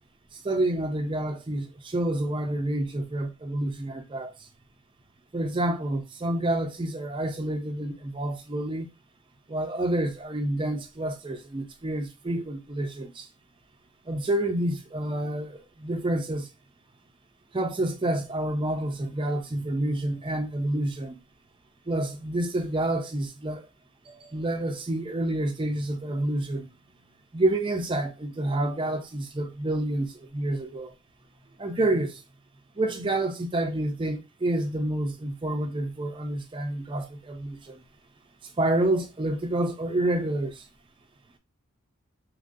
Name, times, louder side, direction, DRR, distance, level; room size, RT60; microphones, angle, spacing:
voice 1, 0.3-4.4 5.3-8.9 9.5-13.3 14.1-16.5 17.5-21.2 21.9-23.7 24.1-26.7 27.3-30.9 31.6-32.2 32.8-37.8 38.6-40.7, right 1 dB, 25° right, 0.4 m, -28 dB
3.7 x 3.0 x 2.5 m
head